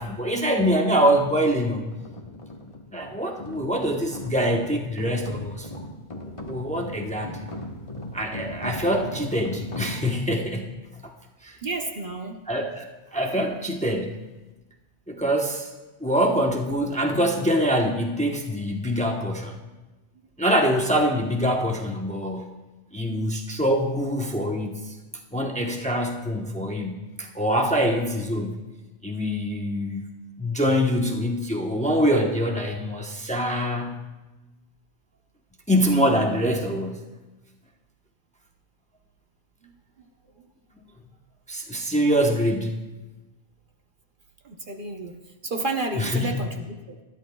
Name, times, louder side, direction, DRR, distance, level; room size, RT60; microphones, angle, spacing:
voice 1, 0.0-1.8 2.9-5.8 6.2-7.3 8.1-10.7 11.4-11.6 12.5-14.1 15.1-15.7 16.0-19.6 20.4-22.5 22.9-24.8 25.3-28.6 29.0-30.0 30.4-34.1 35.7-37.0 41.5-42.8 46.0-46.4, equal, 5° left, 1 dB, 0.9 m, -24 dB
sound 1, 0.9-10.4, left 1 dB, 30° left, 1.3 m, -39 dB
voice 2, 11.6-12.4 39.6-39.7 44.4-45.1 45.4-47.0, right 2 dB, 50° right, 3 dB, 1.0 m, -31 dB
20.5 x 13.0 x 2.3 m, 1.1 s
omnidirectional pair, 1.2 m